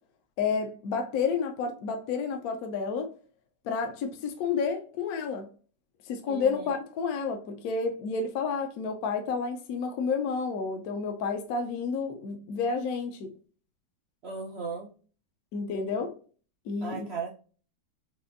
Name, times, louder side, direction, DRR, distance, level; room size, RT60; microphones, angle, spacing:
voice 1, 0.4-3.1 3.6-5.5 6.1-13.3 15.5-16.1 16.7-17.1, left 5 dB, 70° left, 1.0 m, -30 dB
voice 2, 6.2-6.7 14.2-14.9 16.8-17.4, right 5 dB, 80° right, 0.5 m, -37 dB
5.0 x 2.6 x 2.5 m
omnidirectional pair, 1.9 m